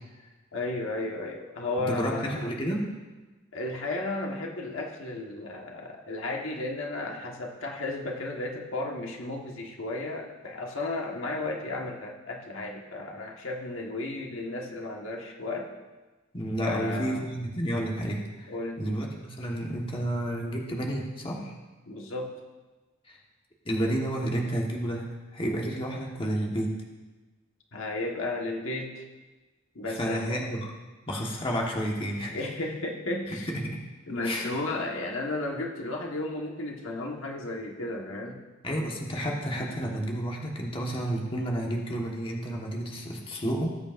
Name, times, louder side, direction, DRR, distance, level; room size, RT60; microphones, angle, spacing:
voice 1, 0.5-2.5 3.5-15.7 16.6-17.3 18.5-18.9 21.9-22.4 27.7-29.0 29.7-30.5 32.3-33.5 34.1-38.4, left 2 dB, 75° left, 0 dB, 1.4 m, -34 dB
voice 2, 1.8-2.9 16.3-21.6 23.1-23.2 23.6-25.1 25.3-26.7 29.9-30.7 31.1-32.4 33.4-33.8 34.2-34.5 38.6-43.8, right 1 dB, 25° left, -1 dB, 1.4 m, -31 dB
18.5 x 8.5 x 2.6 m, 1.2 s
head